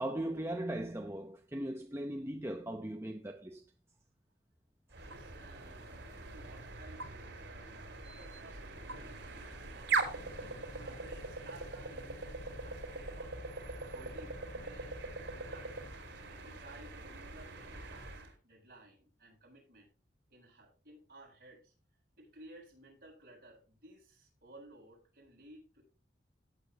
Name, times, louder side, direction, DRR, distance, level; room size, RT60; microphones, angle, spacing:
voice 1, 0.0-3.6, right 1 dB, 15° right, 0.8 m, -38 dB
sound 1, 4.9-18.3, right 4 dB, 75° right, 3.9 m, -41 dB
voice 2, 5.0-13.4 13.9-15.8 16.3-19.9 20.3-21.7 22.2-25.8, right 1 dB, 50° right, 7.9 m, -57 dB
17.0 x 8.8 x 3.0 m
head